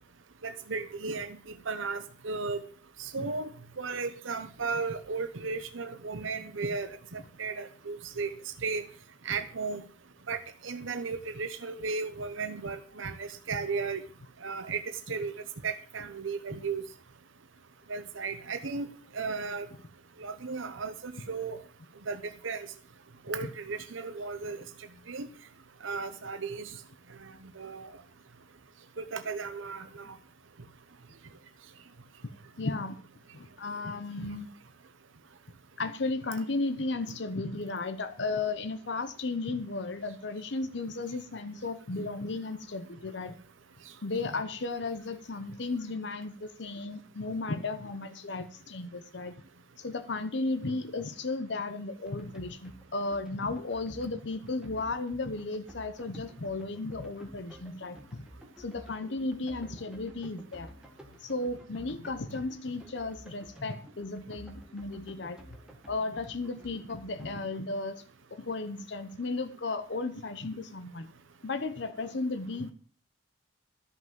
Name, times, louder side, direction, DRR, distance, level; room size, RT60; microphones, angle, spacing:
voice 1, 0.4-1.4 1.7-2.6 3.0-3.5 3.8-8.3 8.6-8.8 9.2-9.8 10.3-14.0 14.4-14.8 15.1-15.3 15.6-16.8 17.9-18.9 19.1-19.7 20.2-21.6 22.1-22.7 23.3-24.6 25.1-25.3 25.8-26.7 27.6-27.9 29.0-30.1, right 4 dB, 85° right, 8 dB, 0.9 m, -35 dB
voice 2, 32.6-33.0 33.3-34.5 35.8-43.4 44.0-49.3 49.8-58.3 58.6-60.7 61.2-65.4 65.9-68.0 68.3-71.1 71.4-72.7, left 3 dB, 65° left, 9 dB, 0.8 m, -34 dB
sound 1, 52.1-67.6, equal, 5° right, 1.7 m, -51 dB
13.0 x 5.8 x 7.6 m, 0.43 s
head